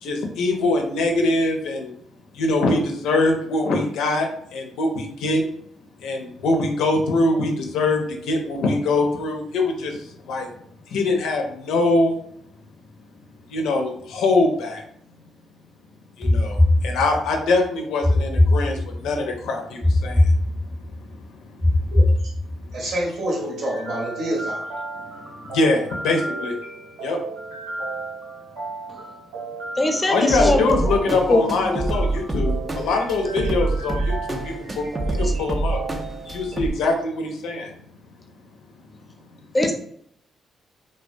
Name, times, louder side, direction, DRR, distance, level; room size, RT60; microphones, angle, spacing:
voice 1, 0.0-1.9 2.3-5.4 6.0-10.5 10.9-12.2 13.5-14.8 16.2-20.6 21.0-21.1 21.4-21.5 21.8-21.9 25.0-26.5 27.0-27.2 30.1-35.8 36.3-37.7, left 2 dB, 75° left, 2 dB, 0.5 m, -23 dB
sound 1, 16.2-17.4 18.0-19.2 19.8-21.0 21.6-22.8, left 1 dB, 5° right, 0.8 m, -20 dB
voice 2, 21.9-22.3 22.7-24.7, right 1 dB, 70° right, -3 dB, 0.9 m, -28 dB
sound 2, 23.3-36.6, right 2 dB, 85° right, 1.2 m, -35 dB
voice 3, 29.8-30.6 31.1-31.7 35.2-35.3 39.5-39.7, left 1 dB, 25° left, 4 dB, 0.5 m, -21 dB
sound 3, 30.3-36.7, right 2 dB, 30° right, 0.4 m, -26 dB
2.2 x 2.1 x 2.6 m, 0.66 s
hypercardioid pair, 45°, 0 cm